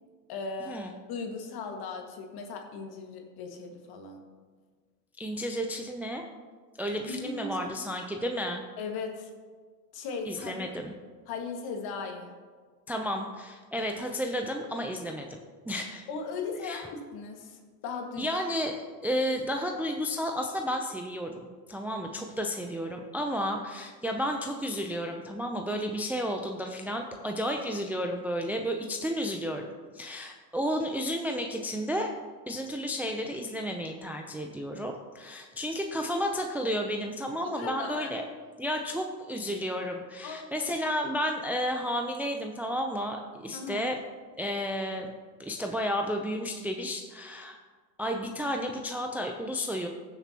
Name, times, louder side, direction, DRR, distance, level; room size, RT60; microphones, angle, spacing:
voice 1, 0.3-4.2 7.0-7.8 8.8-9.3 9.9-10.7 11.3-12.3 16.1-18.4 37.4-38.1 40.2-40.7 43.5-43.9, left 4 dB, 50° left, 3 dB, 1.9 m, -38 dB
voice 2, 5.2-6.2 6.8-8.6 10.3-10.9 12.9-15.3 15.7-16.0 16.6-16.9 18.2-29.7 29.9-32.1 32.5-38.2 38.6-44.0 44.4-45.1 45.4-47.6 48.0-49.9, equal, 5° right, 3 dB, 0.5 m, -32 dB
15.5 x 7.0 x 2.9 m, 1.5 s
hypercardioid pair, 100°, 49 cm